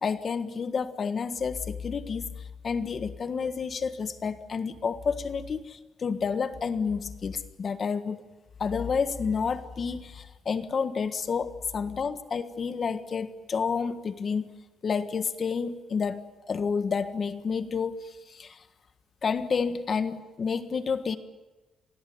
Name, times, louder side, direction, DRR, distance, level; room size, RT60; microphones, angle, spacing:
voice 1, 0.0-8.2 8.6-14.5 14.8-16.2 16.5-18.6 19.2-21.2, left 5 dB, 40° left, 10 dB, 1.5 m, -30 dB
27.5 x 17.5 x 9.5 m, 1.1 s
cardioid pair, 145°, 0 cm